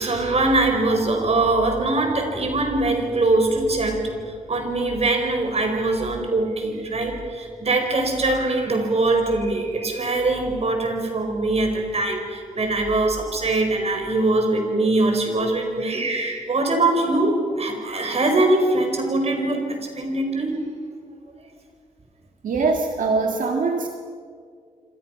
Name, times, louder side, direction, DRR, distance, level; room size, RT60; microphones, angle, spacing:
voice 1, 0.0-4.2 4.5-20.7, right 2 dB, 50° right, 4 dB, 5.2 m, -22 dB
voice 2, 22.4-23.9, right 4 dB, 90° right, 3 dB, 1.8 m, -22 dB
27.0 x 27.0 x 5.9 m, 2.1 s
wide cardioid pair, 100°, 13 cm